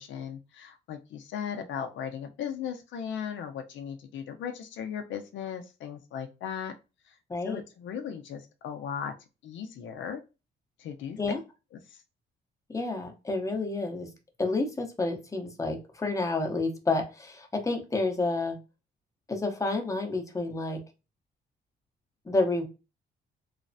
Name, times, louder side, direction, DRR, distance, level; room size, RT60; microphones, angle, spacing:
voice 1, 0.0-6.7 7.1-7.2 7.4-9.1 9.4-10.2 10.8-11.2 11.7-12.0, left 8 dB, 75° left, 6 dB, 0.5 m, -37 dB
voice 2, 7.3-7.6 11.2-11.4 12.7-14.1 14.4-18.6 19.3-20.8 22.3-22.7, left 3 dB, 15° left, 3 dB, 0.7 m, -29 dB
3.1 x 2.0 x 2.6 m, 0.29 s
cardioid pair, 90°, 20 cm